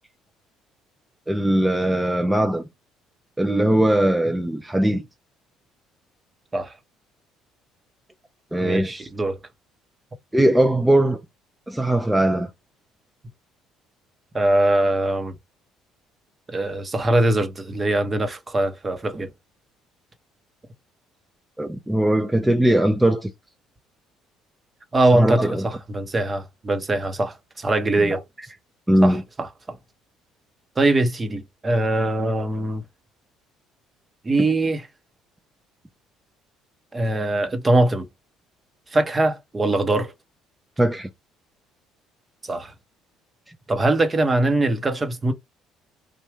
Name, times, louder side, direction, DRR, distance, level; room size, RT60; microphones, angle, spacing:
voice 1, 1.3-2.6 3.4-5.0 8.5-9.1 10.3-11.2 11.7-12.5 21.6-23.3 25.1-25.7 28.0-28.2 28.9-29.2 40.8-41.1, right 1 dB, 10° right, 0.6 m, -20 dB
voice 2, 8.6-9.4 14.3-15.3 16.5-19.3 24.9-28.2 29.0-29.8 30.8-32.8 34.2-34.8 36.9-38.1 38.9-40.1 42.4-42.7 43.7-45.3, right 2 dB, 25° right, 1.0 m, -22 dB
3.5 x 2.6 x 3.3 m
hypercardioid pair, 60°, 0 cm